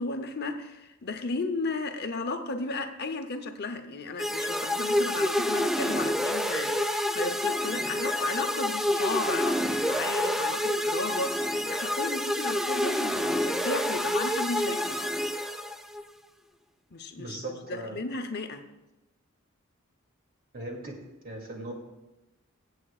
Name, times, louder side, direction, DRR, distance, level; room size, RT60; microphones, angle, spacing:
voice 1, 0.0-15.0 16.9-17.4 17.7-18.7, left 3 dB, 50° left, 6 dB, 0.8 m, -34 dB
sound 1, 4.2-16.0, left 1 dB, ahead, 0.4 m, -28 dB
voice 2, 17.2-18.0 20.5-20.9 21.2-21.7, right 2 dB, 45° right, 0 dB, 2.6 m, -38 dB
23.5 x 7.9 x 2.4 m, 1.0 s
head